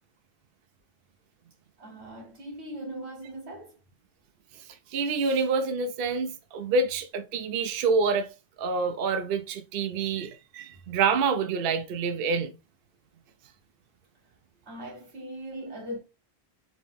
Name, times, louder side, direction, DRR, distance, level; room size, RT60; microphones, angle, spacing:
voice 1, 1.8-3.7 14.7-16.0, right 1 dB, 90° right, 1.7 m, -39 dB
voice 2, 4.9-8.3 8.6-12.5, right 4 dB, 65° right, 0.7 m, -27 dB
4.1 x 2.9 x 3.5 m
omnidirectional pair, 1.1 m